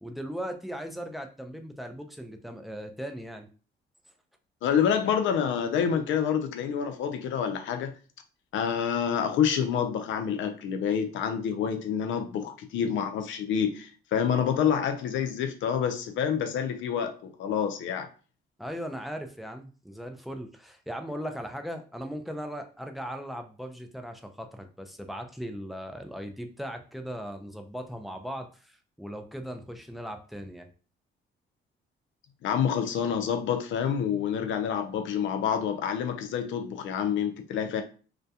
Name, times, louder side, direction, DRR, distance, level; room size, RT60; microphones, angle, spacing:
voice 1, 0.0-3.5 18.6-30.7, equal, ahead, 0.4 m, -38 dB
voice 2, 4.6-7.9 8.5-18.1 32.4-37.8, left 8 dB, 75° left, 0.5 m, -28 dB
2.2 x 2.1 x 2.7 m
cardioid pair, 90°, 20 cm